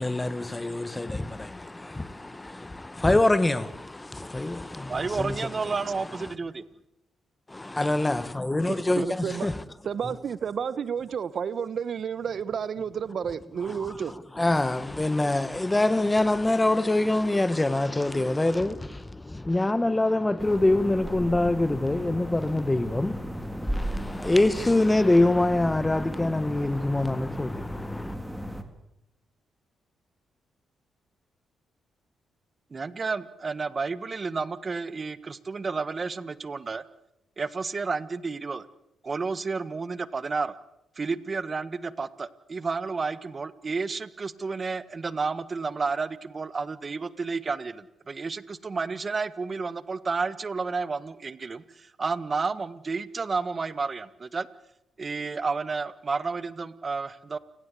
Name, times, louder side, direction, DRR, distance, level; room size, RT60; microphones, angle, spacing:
voice 1, 0.0-5.7 6.2-6.3 7.5-9.6 14.4-28.1, left 2 dB, 15° left, 1.4 m, -25 dB
voice 2, 4.9-6.6 32.7-36.8 37.4-38.6 39.0-40.5 41.0-54.5 55.0-57.4, right 4 dB, 40° right, 1.6 m, -31 dB
voice 3, 8.7-9.5 9.8-14.1, right 7 dB, 60° right, 1.1 m, -31 dB
sound 1, 20.4-28.6, equal, 5° right, 3.8 m, -35 dB
29.0 x 18.5 x 8.4 m
cardioid pair, 70°, 0 cm